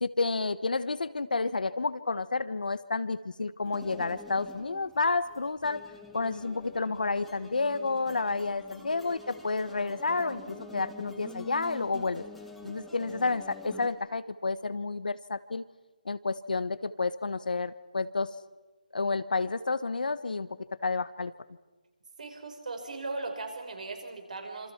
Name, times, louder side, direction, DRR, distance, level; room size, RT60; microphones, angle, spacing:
voice 1, 0.0-5.8 6.1-12.2 12.6-15.6 16.0-18.3 18.9-20.5 20.8-21.3, left 3 dB, 75° left, 14 dB, 1.3 m, -30 dB
sound 1, 3.6-13.9, left 3 dB, ahead, 1.5 m, -47 dB
voice 2, 22.2-24.7, right 3 dB, 60° right, 5 dB, 5.7 m, -38 dB
27.0 x 26.5 x 6.0 m, 1.2 s
figure-of-eight pair, 165°, 5 cm